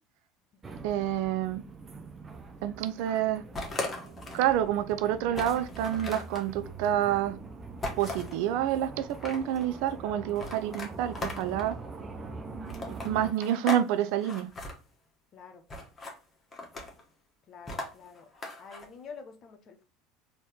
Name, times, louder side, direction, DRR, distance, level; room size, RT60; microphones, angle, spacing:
sound 1, 0.6-13.3, right 3 dB, 25° right, 0.7 m, -44 dB
voice 1, 0.8-1.6 2.6-3.4 4.3-7.4 8.0-11.8 12.9-14.5, right 11 dB, 60° right, 0.5 m, -28 dB
sound 2, 3.5-4.5 4.9-5.0 5.3-6.5 7.8-8.4 9.0-9.6 10.4-11.7 12.7-13.9 14.1-14.7 15.7-16.2 16.5-17.0 17.7-18.9, left 2 dB, 25° left, 1.4 m, -37 dB
voice 2, 15.3-15.7 17.5-18.3 18.6-19.8, left 5 dB, 45° left, 0.9 m, -48 dB
4.1 x 2.9 x 3.7 m
figure-of-eight pair, 70°, 0 cm